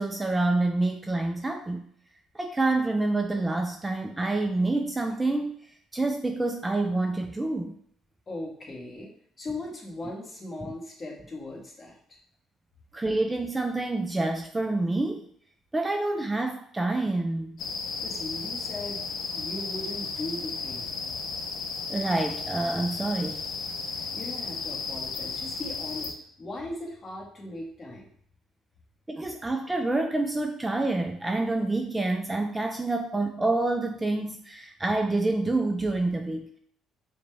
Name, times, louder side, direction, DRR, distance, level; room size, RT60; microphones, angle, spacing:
voice 1, 0.0-1.8 2.3-5.6 5.9-7.7 10.6-10.7 12.9-15.2 15.7-17.6 21.9-23.5 29.1-36.6, right 2 dB, 15° right, 4 dB, 0.3 m, -27 dB
voice 2, 8.3-9.1 9.4-12.0 18.0-19.1 19.3-20.9 24.0-28.1, left 2 dB, 30° left, -3 dB, 1.2 m, -38 dB
sound 1, 17.6-26.1, left 4 dB, 65° left, 0.5 m, -34 dB
5.0 x 2.2 x 3.3 m, 0.63 s
cardioid pair, 100°, 0 cm